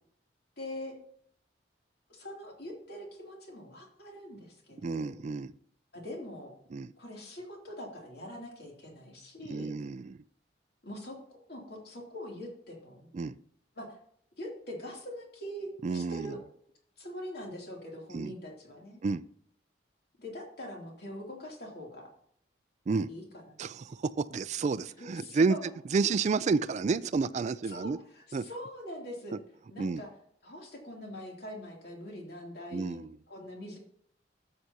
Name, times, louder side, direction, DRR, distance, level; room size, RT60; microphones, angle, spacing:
voice 1, 0.6-1.0 2.1-5.2 5.9-6.5 7.0-9.7 10.8-13.1 13.7-14.0 14.4-16.4 17.0-19.0 20.2-22.1 23.1-23.7 25.0-25.7 27.7-29.4 29.7-30.1 30.4-33.8, left 1 dB, 60° left, 2.8 m, -43 dB
voice 2, 4.8-5.5 6.7-6.9 9.5-10.2 13.1-13.4 15.8-16.4 18.1-18.3 19.0-19.2 22.9-23.1 23.6-25.6 25.9-28.0 28.3-28.4 29.8-30.0 32.7-33.1, right 4 dB, 40° right, 0.3 m, -30 dB
12.5 x 7.7 x 2.8 m
head